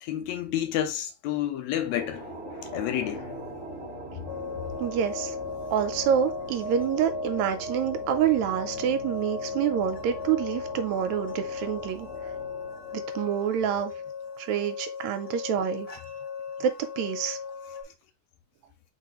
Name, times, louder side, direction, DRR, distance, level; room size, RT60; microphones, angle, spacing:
voice 1, 0.0-2.3 2.7-3.3, left 11 dB, 80° left, 1.9 m, -29 dB
sound 1, 1.7-14.3, right 1 dB, 5° right, 1.4 m, -40 dB
sound 2, 4.3-17.8, left 6 dB, 20° left, 2.0 m, -37 dB
voice 2, 4.8-5.4 5.7-12.1 12.9-13.9 14.4-15.9 16.6-17.4, right 9 dB, 80° right, 1.8 m, -27 dB
4.4 x 4.1 x 2.9 m
omnidirectional pair, 3.4 m